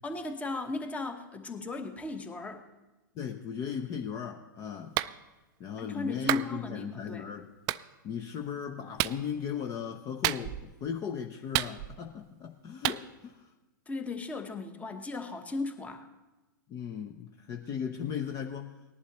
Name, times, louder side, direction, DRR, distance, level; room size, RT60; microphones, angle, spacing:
voice 1, 0.0-2.6 5.8-7.3 13.9-16.1, left 3 dB, 10° left, 7 dB, 1.1 m, -36 dB
voice 2, 3.2-5.0 5.6-7.5 8.0-13.5 16.7-18.7, left 7 dB, 30° left, 5 dB, 0.7 m, -37 dB
Clapping, 4.9-5.1 6.3-6.5 7.7-7.8 9.0-9.2 10.2-10.7 11.5-12.1 12.8-13.0, right 17 dB, 35° right, 0.3 m, -29 dB
19.0 x 11.0 x 3.0 m, 1.1 s
hypercardioid pair, 115°, 11 cm